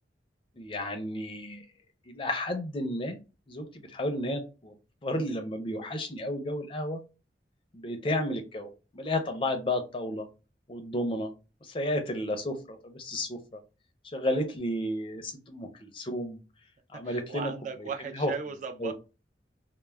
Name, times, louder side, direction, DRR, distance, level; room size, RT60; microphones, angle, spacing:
voice 1, 0.6-1.7 2.1-3.2 3.5-4.7 5.0-7.0 7.7-10.3 10.7-11.3 11.6-13.6 14.0-16.4 16.9-17.5 17.8-18.3 18.8-18.9, left 1 dB, 30° left, 0.4 m, -32 dB
voice 2, 17.0-18.9, right 5 dB, 45° right, 0.3 m, -37 dB
2.2 x 2.0 x 3.2 m
head